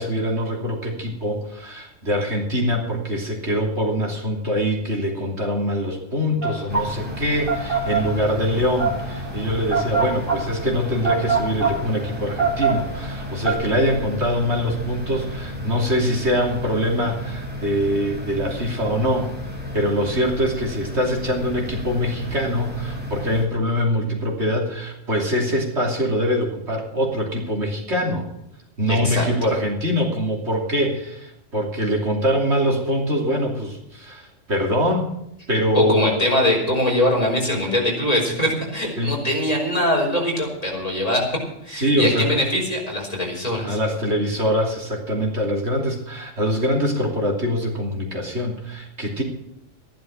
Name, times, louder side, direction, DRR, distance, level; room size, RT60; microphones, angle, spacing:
voice 1, 0.0-19.3 19.7-28.3 28.8-35.1 35.5-36.1 39.0-39.2 41.7-42.4 43.6-49.2, equal, 65° right, 1 dB, 3.3 m, -23 dB
sound 1, 6.4-13.5, right 5 dB, 50° right, 3.0 m, -23 dB
sound 2, 6.7-23.5, left 1 dB, 10° right, 4.0 m, -33 dB
voice 2, 28.9-29.5 35.7-41.2 41.6-43.8, left 1 dB, 30° left, -1 dB, 5.0 m, -22 dB
14.0 x 11.5 x 6.4 m, 0.83 s
omnidirectional pair, 1.2 m